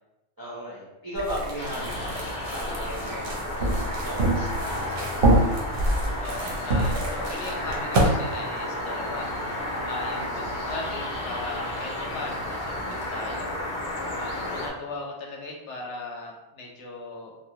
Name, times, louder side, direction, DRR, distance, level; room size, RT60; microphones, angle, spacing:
voice 1, 0.4-5.4 10.1-10.5 14.2-14.9, equal, 35° right, -8 dB, 0.3 m, -37 dB
sound 1, 1.2-8.1, right 1 dB, 60° right, 0.7 m, -26 dB
sound 2, 1.6-14.7, left 1 dB, 60° left, 0.5 m, -32 dB
voice 2, 6.2-9.3 9.8-13.5 14.2-17.4, left 3 dB, 75° left, 0 dB, 0.9 m, -38 dB
2.4 x 2.0 x 2.8 m, 0.97 s
omnidirectional pair, 1.2 m